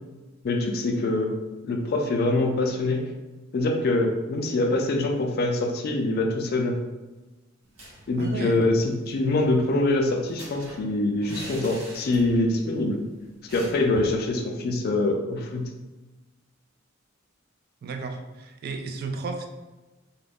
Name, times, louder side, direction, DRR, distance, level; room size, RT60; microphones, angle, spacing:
voice 1, 0.4-1.3 1.6-3.0 3.5-6.8 8.1-13.0 13.5-15.7, left 2 dB, 50° left, 2 dB, 0.4 m, -24 dB
sound 1, 7.6-8.4 8.7-8.8 9.1-12.6 12.8-13.0 13.5-14.2, equal, 85° right, 1.2 m, -43 dB
voice 2, 8.2-8.6 17.8-19.5, right 3 dB, 50° right, 5 dB, 0.3 m, -33 dB
2.4 x 2.1 x 3.4 m, 1.1 s
head